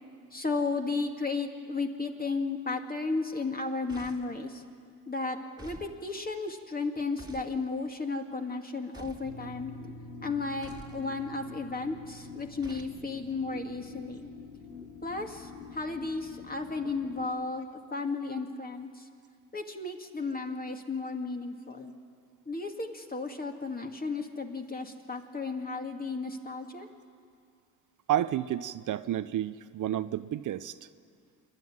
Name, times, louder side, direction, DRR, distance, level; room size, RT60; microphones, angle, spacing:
voice 1, 0.3-4.6 5.1-9.7 10.2-14.3 15.0-18.9 19.5-21.9 22.5-26.9, left 3 dB, 25° left, 4 dB, 2.4 m, -34 dB
sound 1, 3.9-4.4 5.6-5.9 7.2-7.5 8.9-9.3 10.6-11.0 12.6-13.0, right 2 dB, 10° right, 2.3 m, -48 dB
sound 2, 9.2-17.2, left 4 dB, 85° left, 7.2 m, -46 dB
voice 2, 28.1-30.7, right 12 dB, 55° right, 13 dB, 0.8 m, -30 dB
27.0 x 11.0 x 9.5 m, 2.2 s
supercardioid pair, 70°, 37 cm